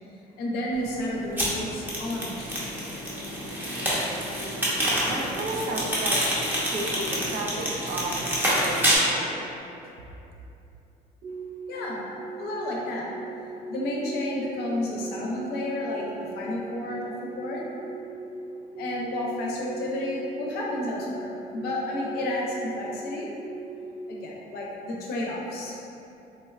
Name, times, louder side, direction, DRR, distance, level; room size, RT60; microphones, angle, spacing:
voice 1, 0.4-2.8 11.7-12.0 12.4-13.1 13.7-17.6 18.8-23.3 24.1-25.8, left 1 dB, 70° left, -3 dB, 0.6 m, -31 dB
sound 1, 1.4-9.0, equal, 10° right, 0.7 m, -27 dB
voice 2, 5.0-6.3 6.7-9.5, right 2 dB, 65° right, 0 dB, 0.4 m, -33 dB
sound 2, 11.2-11.7 12.2-12.6 13.1-13.6 14.0-14.5 15.0-15.5 15.9-16.4 16.8-17.3 17.8-18.3 18.7-19.2 19.7-20.1 20.6-21.1 21.5-22.0 22.5-23.0 23.4-23.9, right 5 dB, 80° right, 1.3 m, -39 dB
3.6 x 2.1 x 2.3 m, 2.8 s
cardioid pair, 110°, 17 cm